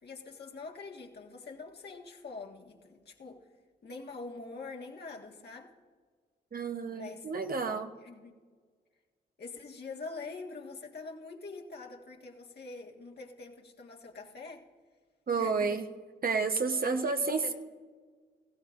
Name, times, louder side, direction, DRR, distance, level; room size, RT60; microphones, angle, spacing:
voice 1, 0.0-3.5 3.8-5.7 6.9-7.3 8.0-8.3 9.4-14.7 15.4-15.8 16.8-17.5, left 3 dB, 65° left, 0 dB, 1.7 m, -44 dB
voice 2, 6.5-7.9 15.3-15.8 16.2-17.5, right 4 dB, 50° right, 6 dB, 1.0 m, -30 dB
18.0 x 16.0 x 2.5 m, 1.5 s
cardioid pair, 55°, 18 cm